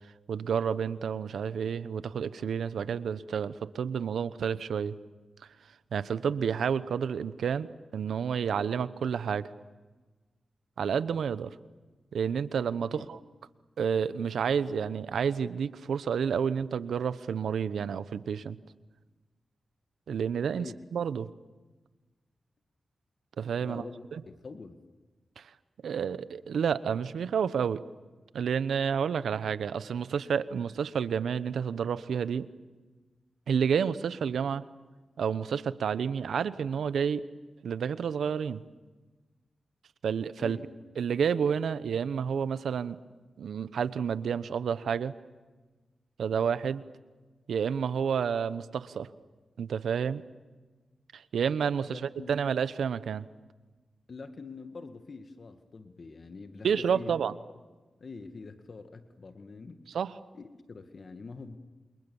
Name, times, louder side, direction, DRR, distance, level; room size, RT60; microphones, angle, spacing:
voice 1, 0.3-5.0 5.9-9.5 10.8-11.5 12.1-13.2 13.8-18.6 20.1-20.7 20.9-21.3 23.4-23.8 24.1-24.2 25.4-25.5 25.8-27.8 28.3-32.5 33.5-34.6 35.2-37.2 37.6-38.6 40.0-40.6 41.0-43.0 43.4-45.1 46.2-46.8 47.5-49.1 49.6-50.2 51.1-53.3 56.6-57.3 59.9-60.2, right 7 dB, 85° right, 15 dB, 1.0 m, -30 dB
voice 2, 23.6-24.8 40.4-40.6 51.9-52.3 54.1-57.2 58.0-59.8 60.3-61.6, left 4 dB, 55° left, 8 dB, 1.9 m, -45 dB
28.5 x 28.0 x 7.2 m, 1.2 s
cardioid pair, 50°, 0 cm